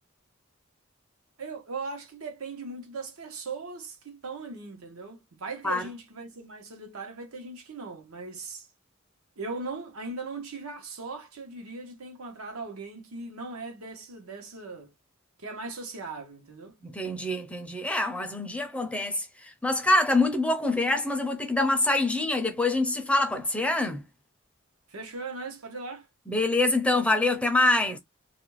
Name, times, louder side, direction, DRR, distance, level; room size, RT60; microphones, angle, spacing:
voice 1, 1.4-8.7 9.4-14.9 15.4-16.8 24.9-26.1, right 3 dB, 90° right, 0.9 m, -39 dB
voice 2, 16.8-24.0 26.3-28.0, left 2 dB, 5° left, 0.5 m, -25 dB
2.5 x 2.1 x 3.0 m
head